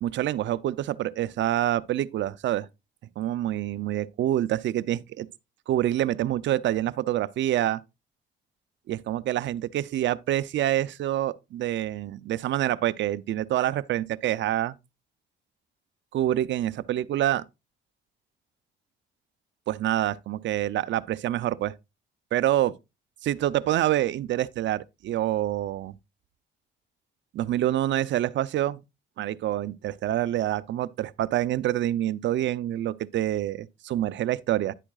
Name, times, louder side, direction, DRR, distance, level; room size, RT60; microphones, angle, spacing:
voice 1, 0.0-2.7 3.2-5.3 5.7-7.8 8.9-14.8 16.1-17.4 19.7-21.7 22.3-22.7 23.3-25.9 27.3-28.8 29.2-34.7, right 13 dB, 65° right, 0.5 m, -26 dB
11.0 x 8.6 x 2.3 m
cardioid pair, 90°, 20 cm